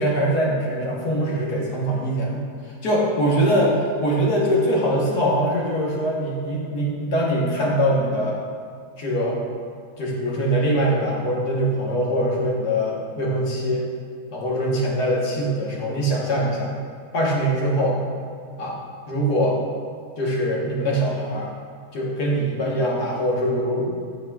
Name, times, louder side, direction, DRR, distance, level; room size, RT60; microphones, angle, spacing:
voice 1, 0.0-2.4 2.8-8.4 9.0-9.4 10.0-13.9 14.3-16.8 17.1-18.0 18.6-18.8 19.1-19.6 20.2-21.5 21.9-24.0, equal, 85° left, -3 dB, 1.8 m, -22 dB
8.3 x 7.6 x 2.3 m, 2.2 s
omnidirectional pair, 1.7 m